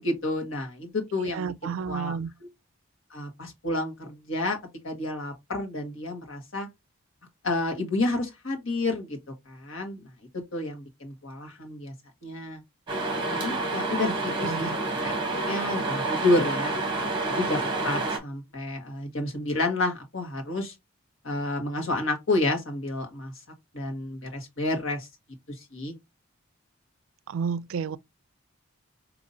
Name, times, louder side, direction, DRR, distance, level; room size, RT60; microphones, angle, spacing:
voice 1, 0.0-2.1 3.1-4.6 4.8-6.7 7.4-9.2 9.5-10.0 10.5-11.9 12.2-12.6 13.3-14.7 15.0-15.2 15.4-16.7 17.3-20.7 21.2-23.3 23.7-25.1 25.7-25.9, left 2 dB, 70° left, 1.4 m, -30 dB
voice 2, 1.2-2.3 14.0-14.8 27.3-28.0, right 6 dB, 75° right, 0.3 m, -32 dB
sound 1, 12.9-18.2, right 2 dB, 25° right, 1.0 m, -28 dB
5.3 x 2.8 x 2.6 m
head